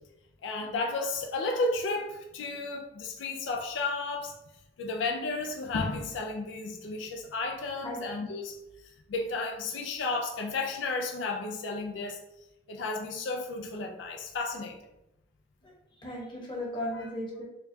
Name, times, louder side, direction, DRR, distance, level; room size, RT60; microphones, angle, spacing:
voice 1, 0.4-4.3 4.8-8.6 8.8-12.2 12.7-14.8, left 3 dB, 80° left, 2 dB, 0.4 m, -33 dB
voice 2, 15.6-17.4, left 1 dB, 25° left, -3 dB, 1.0 m, -37 dB
4.5 x 2.2 x 2.7 m, 0.90 s
head